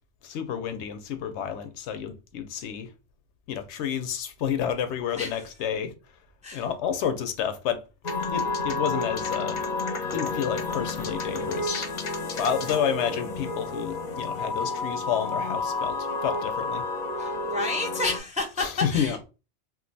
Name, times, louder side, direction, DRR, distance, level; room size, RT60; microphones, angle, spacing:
voice 1, 0.2-2.9 3.5-5.9 6.5-7.8 8.3-9.6 10.1-11.8 12.4-16.8 18.5-19.2, left 8 dB, 90° left, 0.9 m, -30 dB
sound 1, 8.0-18.2, left 3 dB, 50° left, 0.6 m, -30 dB
voice 2, 17.2-19.2, left 3 dB, 10° right, 0.3 m, -30 dB
2.5 x 2.3 x 3.8 m
omnidirectional pair, 1.1 m